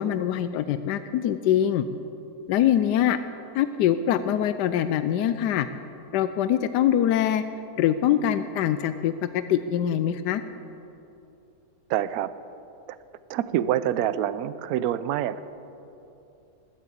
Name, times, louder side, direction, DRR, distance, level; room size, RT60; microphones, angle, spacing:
voice 1, 0.0-1.9 2.5-3.2 3.5-5.7 6.1-7.4 7.8-10.4, left 10 dB, 90° left, 11 dB, 1.2 m, -23 dB
voice 2, 11.9-12.3 13.3-15.4, right 11 dB, 70° right, 15 dB, 1.0 m, -26 dB
19.5 x 8.8 x 8.4 m, 2.9 s
omnidirectional pair, 1.7 m